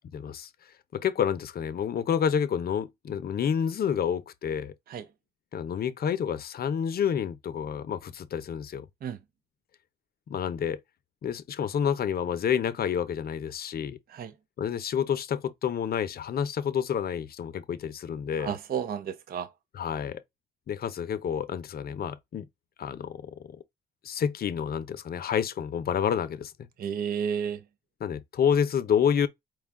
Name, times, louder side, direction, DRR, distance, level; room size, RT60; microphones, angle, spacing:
voice 1, 0.1-0.5 0.9-4.7 5.5-8.9 10.3-10.8 11.2-14.0 14.6-18.5 19.7-20.2 20.7-22.5 22.8-23.6 24.0-26.5 28.0-29.3, left 8 dB, 50° left, 0.6 m, -29 dB
voice 2, 18.4-19.5 26.8-27.6, right 7 dB, 50° right, 0.5 m, -32 dB
4.7 x 2.3 x 3.6 m
cardioid pair, 90°, 20 cm